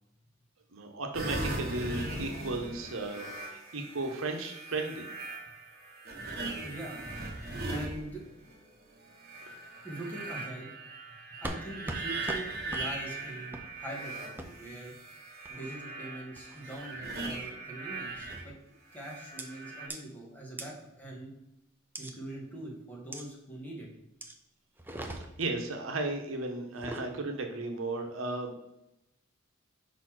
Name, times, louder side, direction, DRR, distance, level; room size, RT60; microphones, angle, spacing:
voice 1, 0.7-5.1 9.5-9.6 25.4-28.7, right 2 dB, 75° right, 3 dB, 1.0 m, -35 dB
sound 1, 1.1-8.5 9.1-18.4 18.9-19.9, right 2 dB, 50° right, 1.3 m, -39 dB
voice 2, 6.6-7.0 7.7-8.3 9.8-10.7 11.4-15.0 15.5-18.5 18.9-21.3 22.0-23.9, right 1 dB, 10° left, -3 dB, 1.6 m, -43 dB
sound 2, 11.4-11.6 11.9-12.0 12.3-12.4 12.7-12.9 13.5-13.7 14.4-14.5 15.4-15.8 16.4-16.7 17.2-17.5 18.3-18.6 19.4-19.5 19.9-20.0 20.6-20.7 21.9-22.1 23.1-23.3 24.2-24.4 24.8-25.5 26.7-27.1, right 1 dB, 10° right, 0.6 m, -40 dB
5.3 x 4.2 x 6.1 m, 0.84 s
head